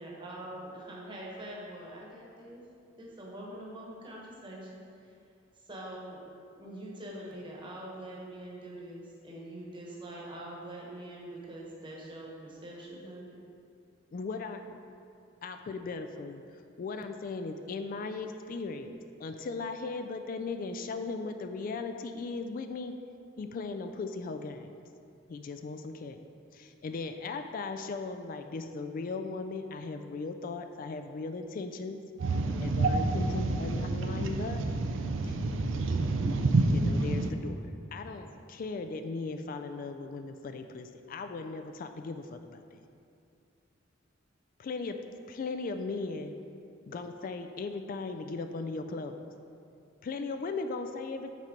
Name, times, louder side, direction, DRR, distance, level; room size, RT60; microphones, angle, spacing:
voice 1, 0.0-2.6 3.0-4.7 5.0-5.1 5.6-6.2 6.5-13.4, right 1 dB, 25° right, -4 dB, 1.2 m, -44 dB
voice 2, 14.1-14.8 15.4-16.4 16.8-22.9 23.4-24.7 25.3-26.2 26.5-32.0 32.6-34.6 36.7-37.6 37.9-42.8 44.6-45.0 45.3-46.3 46.9-49.2 50.0-51.3, left 4 dB, 45° left, 7 dB, 0.3 m, -37 dB
voice 3, 32.2-37.3, right 2 dB, 70° right, 5 dB, 0.5 m, -28 dB
6.1 x 4.3 x 5.1 m, 2.5 s
head